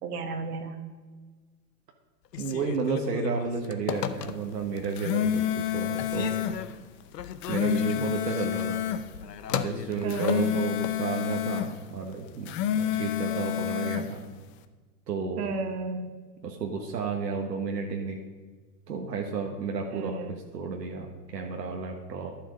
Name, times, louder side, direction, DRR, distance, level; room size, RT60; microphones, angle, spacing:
voice 1, 0.0-0.8 10.0-10.5 15.4-16.1 19.9-20.3, right 4 dB, 65° right, 5 dB, 1.7 m, -32 dB
Telephone, 2.3-4.7 5.2-5.7 6.0-11.0, left 9 dB, 80° left, 0.9 m, -36 dB
voice 2, 2.4-6.3 7.5-8.8 9.5-14.2 15.1-15.5 16.4-18.2 18.9-22.3, right 5 dB, 80° right, 1 dB, 1.4 m, -32 dB
sound 1, 4.8-6.6 7.2-9.0 9.9-11.7 12.3-14.1, left 10 dB, 25° left, 0.5 m, -29 dB
11.0 x 7.4 x 5.1 m, 1.4 s
hypercardioid pair, 105°, 49 cm